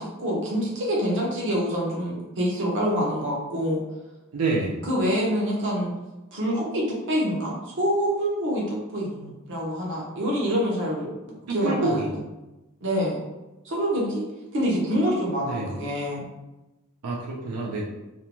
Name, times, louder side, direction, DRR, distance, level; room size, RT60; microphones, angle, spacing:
voice 1, 0.0-3.8 4.8-5.9 6.3-12.1 12.8-13.2 13.6-14.2 14.5-16.2, equal, 55° right, -3 dB, 0.8 m, -26 dB
voice 2, 4.3-4.8 11.5-12.1 15.5-15.8 17.0-17.8, right 3 dB, 90° right, -4 dB, 0.5 m, -27 dB
2.6 x 2.2 x 2.9 m, 1.0 s
head